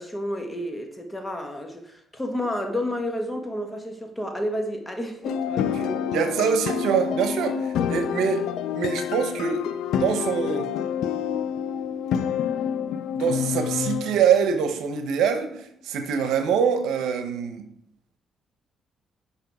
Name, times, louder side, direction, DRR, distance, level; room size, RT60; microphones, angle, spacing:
voice 1, 0.0-6.4, left 1 dB, 10° left, 1.4 m, -31 dB
sound 1, 5.2-14.2, left 8 dB, 85° left, 0.4 m, -28 dB
voice 2, 6.1-8.4 8.7-9.6 9.9-10.7 13.1-17.7, right 7 dB, 85° right, 0.9 m, -24 dB
6.6 x 5.5 x 4.8 m
cardioid pair, 90°, 0 cm